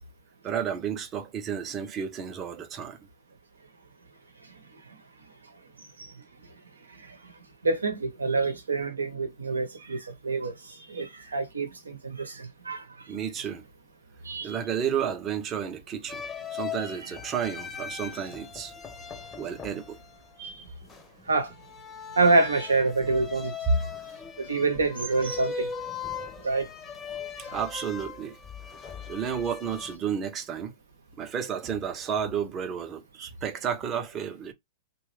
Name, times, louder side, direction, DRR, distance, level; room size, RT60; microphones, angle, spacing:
voice 1, 0.4-3.0 13.1-13.6 14.4-16.2 16.5-18.7 19.3-20.0 27.5-28.4 29.1-30.7 31.2-34.5, right 8 dB, 30° right, 0.7 m, -32 dB
voice 2, 7.6-10.5 10.9-12.8 14.2-14.6 20.4-20.7 21.3-21.5 22.2-23.6 24.4-25.7 26.4-26.7 33.2-33.3, right 3 dB, 85° right, 0.9 m, -26 dB
sound 1, 16.1-30.0, left 6 dB, 20° left, 0.7 m, -39 dB
3.0 x 2.3 x 3.2 m
hypercardioid pair, 110°, 0 cm